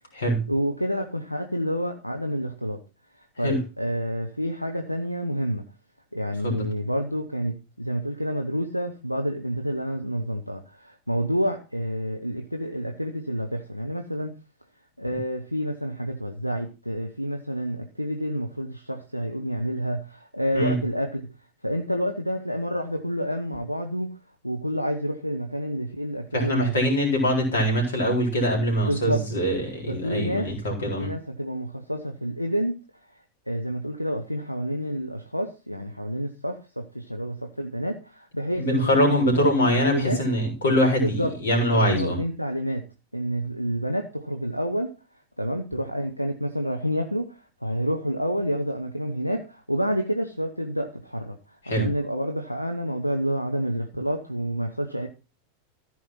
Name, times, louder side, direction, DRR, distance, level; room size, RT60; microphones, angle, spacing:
voice 1, 0.5-2.8 3.4-5.6 6.1-14.3 15.0-21.3 21.6-24.1 24.4-26.8 28.8-29.2 29.9-30.5 31.0-32.7 33.5-40.2 41.0-41.3 41.7-42.8 43.1-44.9 45.4-55.1, equal, 90° left, 5 dB, 0.9 m, -29 dB
voice 2, 26.3-31.1 38.6-42.2 51.7-51.9, equal, 65° left, 2 dB, 4.0 m, -23 dB
14.0 x 4.7 x 5.8 m, 0.32 s
figure-of-eight pair, 90°, 0 cm